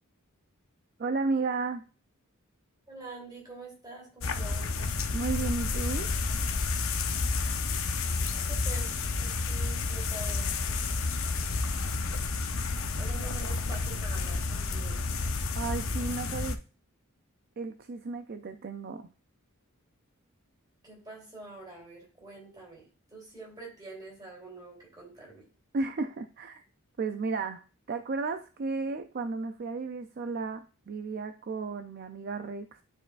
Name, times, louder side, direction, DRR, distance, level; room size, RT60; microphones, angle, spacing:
voice 1, 1.0-1.8 5.1-6.1 15.6-16.6 17.6-19.1 25.7-26.6 27.0-32.8, right 4 dB, 45° right, 8 dB, 0.4 m, -33 dB
voice 2, 2.9-4.7 8.4-10.9 13.0-15.1 20.8-25.4, right 3 dB, 20° right, -3 dB, 3.1 m, -46 dB
sound 1, 4.2-16.5, left 3 dB, 65° left, 0.7 m, -30 dB
9.9 x 4.5 x 2.4 m, 0.37 s
head